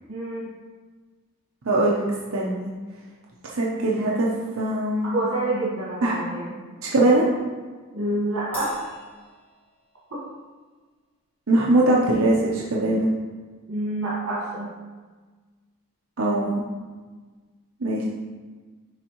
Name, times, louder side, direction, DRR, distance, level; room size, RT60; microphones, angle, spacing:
voice 1, 0.1-0.5 5.0-6.6 7.9-8.8 13.7-14.7, right 1 dB, 85° right, -8 dB, 1.5 m, -27 dB
voice 2, 1.6-2.0 2.3-2.7 3.5-4.3 4.6-5.1 6.0-6.2 6.8-7.2 11.5-13.1 16.2-16.6 17.8-18.0, right 2 dB, 65° right, -4 dB, 0.7 m, -21 dB
Crash cymbal, 8.5-10.2, equal, 10° left, 1.4 m, -42 dB
10.5 x 3.6 x 3.0 m, 1.4 s
head